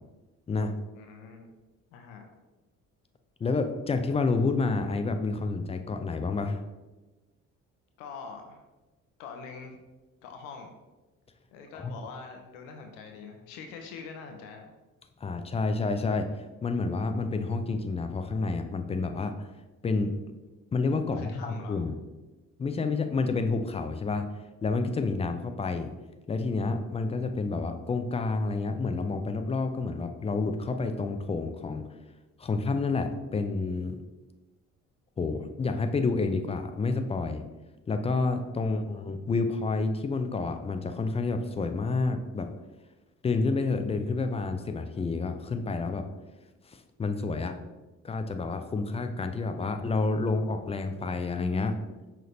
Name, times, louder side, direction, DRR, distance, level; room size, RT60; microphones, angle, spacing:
voice 1, 0.9-1.5 1.9-2.3 8.0-8.6 9.2-9.8 10.2-10.7 11.5-14.7 21.1-21.8 38.6-38.9, left 5 dB, 70° left, 4 dB, 0.6 m, -44 dB
voice 2, 3.4-6.6 11.8-11.9 15.2-16.3 16.6-19.5 19.8-20.1 20.7-21.9 22.6-24.3 24.6-25.9 26.3-31.9 32.4-34.0 35.2-37.4 37.9-42.5 43.2-46.1 46.7-47.6 48.0-51.8, left 3 dB, 15° left, 7 dB, 0.3 m, -29 dB
5.5 x 2.8 x 3.4 m, 1.1 s
figure-of-eight pair, 45°, 40 cm